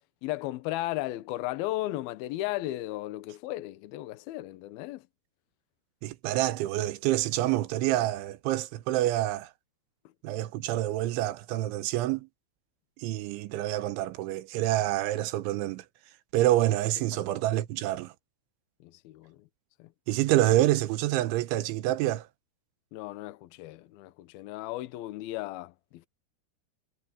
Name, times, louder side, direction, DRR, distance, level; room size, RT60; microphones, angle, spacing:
voice 1, 0.2-5.1 17.1-17.2 18.8-19.5 19.8-19.9 22.9-26.1, left 16 dB, 85° left, 2.2 m, -35 dB
voice 2, 6.0-9.5 10.2-12.3 13.0-15.8 16.3-18.1 20.1-22.3, right 15 dB, 75° right, 3.3 m, -27 dB
omnidirectional pair, 5.6 m